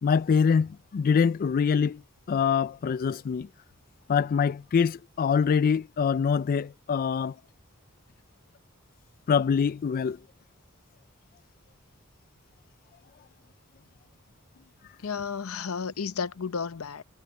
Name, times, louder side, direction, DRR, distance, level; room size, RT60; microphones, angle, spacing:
voice 1, 0.0-2.0 2.3-3.5 4.1-7.4 9.3-10.2, left 6 dB, 45° left, 0.3 m, -24 dB
voice 2, 15.0-17.0, left 5 dB, 80° left, 0.7 m, -32 dB
head